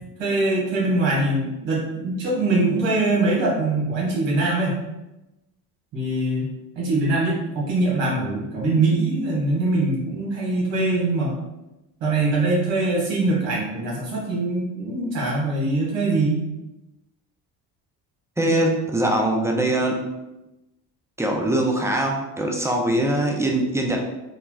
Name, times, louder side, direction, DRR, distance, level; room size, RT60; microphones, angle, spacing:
voice 1, 0.2-4.8 5.9-6.5 6.7-11.4 12.0-16.4 18.4-18.5, right 2 dB, 70° right, -4 dB, 1.4 m, -23 dB
voice 2, 18.4-20.0 21.2-24.0, right 1 dB, 5° right, 1 dB, 0.5 m, -22 dB
3.9 x 2.3 x 2.3 m, 0.98 s
hypercardioid pair, 60°, 47 cm